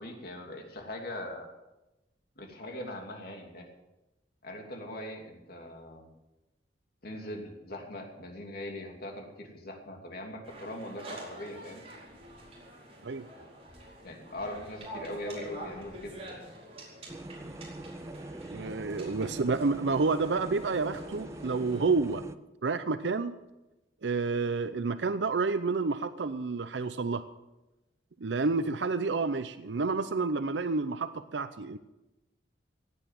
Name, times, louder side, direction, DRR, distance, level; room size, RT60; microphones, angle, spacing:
voice 1, 0.0-1.5 2.4-3.7 4.4-6.1 7.0-11.8 14.0-16.2, left 1 dB, 60° left, 2 dB, 2.9 m, -41 dB
sound 1, 10.5-21.8, right 1 dB, 35° right, 4.7 m, -47 dB
sound 2, 17.1-22.4, right 1 dB, 15° right, 0.5 m, -43 dB
voice 2, 18.4-22.2 22.6-23.3 24.0-27.2 28.2-31.8, right 4 dB, 85° right, 12 dB, 0.6 m, -29 dB
17.0 x 9.2 x 7.7 m, 1.0 s
head